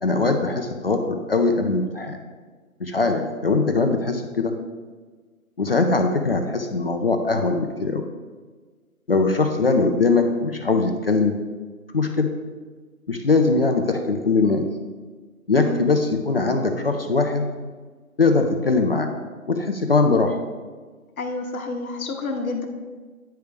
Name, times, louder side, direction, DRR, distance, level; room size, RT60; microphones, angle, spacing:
voice 1, 0.0-2.2 2.8-4.5 5.6-8.0 9.1-11.3 11.9-12.3 13.1-14.6 15.5-17.5 18.2-19.1 19.5-20.4, left 3 dB, 45° left, 4 dB, 0.5 m, -21 dB
voice 2, 21.2-22.7, left 3 dB, 75° left, 3 dB, 1.0 m, -29 dB
9.3 x 3.4 x 5.0 m, 1.4 s
hypercardioid pair, 165°, 43 cm